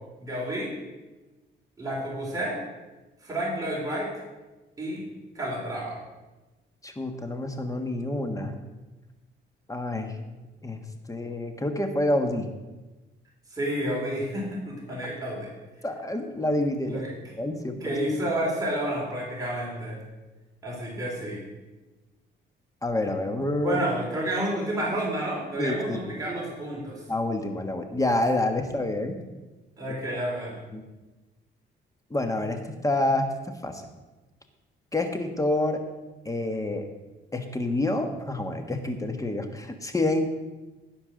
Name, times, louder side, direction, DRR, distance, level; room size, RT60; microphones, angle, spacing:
voice 1, 0.2-0.7 1.8-2.6 3.2-4.1 4.8-5.0 5.3-6.0 13.5-15.5 16.9-17.1 17.8-20.0 20.6-21.4 23.6-27.0 29.8-30.6, right 1 dB, 15° right, -4 dB, 4.4 m, -30 dB
voice 2, 6.8-8.6 9.7-10.2 10.6-10.8 11.1-12.5 15.8-17.0 17.4-18.0 22.8-23.8 25.6-26.0 27.1-29.2 30.7-30.8 32.1-33.8 34.9-35.8 36.2-36.9 37.3-40.2, left 1 dB, 15° left, 6 dB, 1.4 m, -28 dB
15.5 x 5.4 x 6.4 m, 1.1 s
cardioid pair, 90°, 20 cm